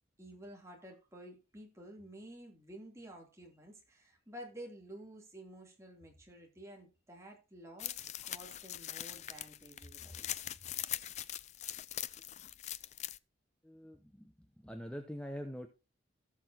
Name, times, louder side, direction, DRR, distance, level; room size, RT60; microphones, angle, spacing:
voice 1, 0.2-10.4, right 1 dB, 15° right, 0 dB, 2.9 m, -51 dB
sound 1, 7.8-13.2, left 12 dB, 35° left, 0.4 m, -42 dB
voice 2, 13.6-14.3 14.6-15.7, equal, 5° left, 6 dB, 0.7 m, -44 dB
18.0 x 6.1 x 2.9 m, 0.29 s
head